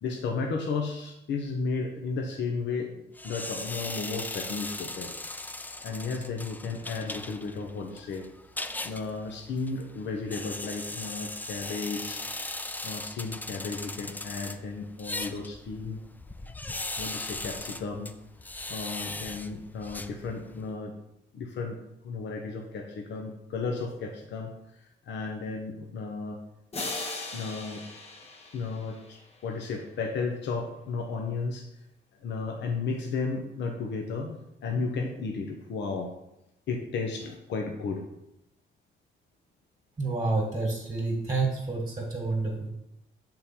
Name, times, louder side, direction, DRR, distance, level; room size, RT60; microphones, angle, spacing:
voice 1, 0.0-5.1 5.8-8.3 8.8-12.2 12.8-16.0 17.0-18.1 18.7-20.9 21.3-21.8 22.0-24.5 25.1-26.4 27.3-27.8 28.5-31.7 32.2-36.1 36.7-38.0, left 4 dB, 65° left, 1 dB, 0.8 m, -34 dB
sound 1, 3.2-20.7, left 2 dB, 10° left, 0.3 m, -39 dB
sound 2, 26.7-29.6, left 2 dB, 30° left, 1.1 m, -38 dB
voice 2, 40.0-42.7, right 3 dB, 20° right, -1 dB, 1.6 m, -29 dB
6.6 x 3.8 x 4.3 m, 0.85 s
cardioid pair, 90°, 20 cm